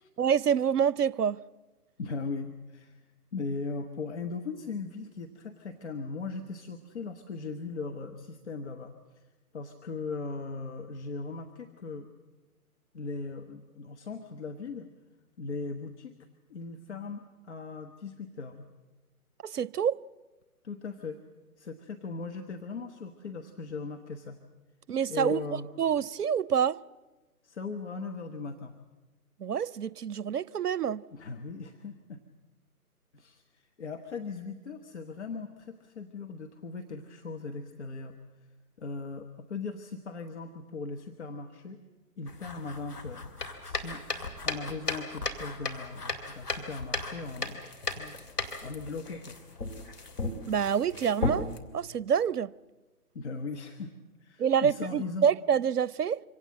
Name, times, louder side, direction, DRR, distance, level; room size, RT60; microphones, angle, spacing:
voice 1, 0.2-1.4 19.4-20.0 24.9-26.8 29.4-31.0 50.5-52.5 54.4-56.2, right 8 dB, 80° right, 0.6 m, -27 dB
voice 2, 2.0-3.0 3.3-8.9 9.5-12.1 12.9-14.9 15.4-16.1 16.5-18.7 20.6-21.2 21.6-24.4 25.1-25.7 27.4-28.7 31.1-32.2 33.1-38.2 38.8-41.8 42.2-43.3 43.6-44.0 44.4-47.6 48.0-48.2 48.6-49.4 53.1-53.9 54.2-55.3, left 4 dB, 45° left, 1.4 m, -38 dB
sound 1, 42.3-51.6, left 2 dB, 80° left, 3.1 m, -36 dB
25.0 x 17.5 x 7.7 m
figure-of-eight pair, 140°, 46 cm